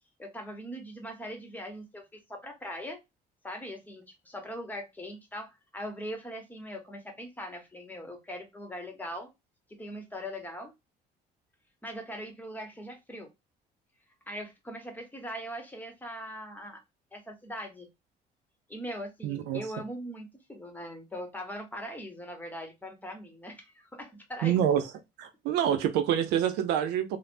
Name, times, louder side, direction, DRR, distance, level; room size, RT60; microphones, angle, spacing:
voice 1, 0.2-3.0 3.4-9.3 9.8-10.7 11.8-13.3 14.3-16.8 17.1-17.9 18.7-24.6, equal, 10° left, 0.9 m, -41 dB
voice 2, 19.2-19.6 24.4-24.8 25.2-27.2, right 10 dB, 90° right, 0.5 m, -26 dB
3.2 x 2.0 x 2.5 m
cardioid pair, 110°, 17 cm